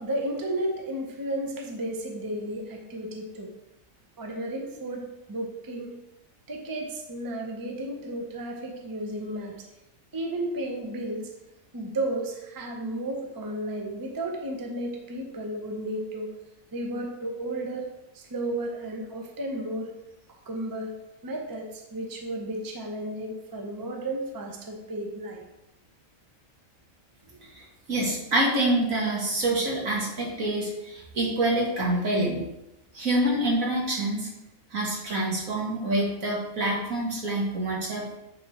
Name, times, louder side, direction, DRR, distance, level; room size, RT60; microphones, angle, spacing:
voice 1, 0.0-3.5 4.2-6.0 6.5-9.6 10.1-11.3 11.7-16.3 16.7-17.9 18.1-19.9 20.5-20.9 21.2-25.4 27.3-27.4, right 1 dB, 20° right, 2 dB, 0.6 m, -33 dB
voice 2, 27.9-32.4 32.9-34.3 34.7-38.1, right 1 dB, 75° right, -3 dB, 2.1 m, -26 dB
8.3 x 3.5 x 4.2 m, 0.93 s
omnidirectional pair, 1.4 m